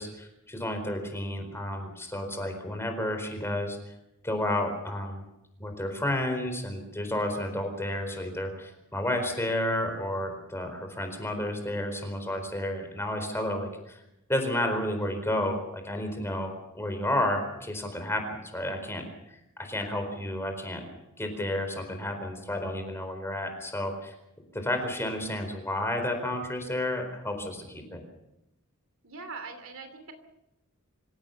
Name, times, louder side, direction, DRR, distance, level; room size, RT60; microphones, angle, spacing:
voice 1, 0.0-3.8 4.2-5.2 5.6-14.0 14.3-19.1 19.6-20.8 21.2-24.1 24.5-28.0, left 1 dB, 10° left, 5 dB, 4.4 m, -31 dB
voice 2, 29.0-30.1, right 4 dB, 65° right, 7 dB, 3.0 m, -41 dB
26.0 x 16.5 x 7.1 m, 0.87 s
head